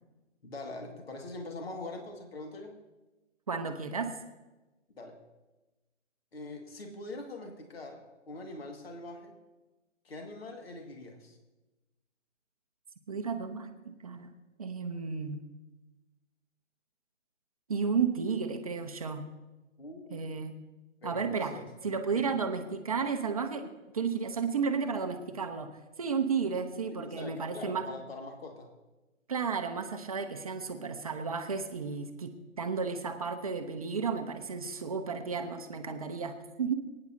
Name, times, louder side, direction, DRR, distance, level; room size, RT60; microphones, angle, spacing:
voice 1, 0.4-2.8 5.0-5.2 6.3-9.4 10.0-11.4 19.8-20.2 21.0-21.7 22.1-22.4 26.9-28.7, left 2 dB, 55° left, 3 dB, 2.0 m, -43 dB
voice 2, 3.5-4.1 13.1-14.3 14.6-15.4 17.7-19.3 20.1-20.6 21.0-21.5 21.8-23.7 23.9-25.7 26.0-27.8 29.3-36.7, right 5 dB, 30° right, 6 dB, 0.7 m, -33 dB
24.0 x 9.6 x 2.7 m, 1.1 s
figure-of-eight pair, 145°, 37 cm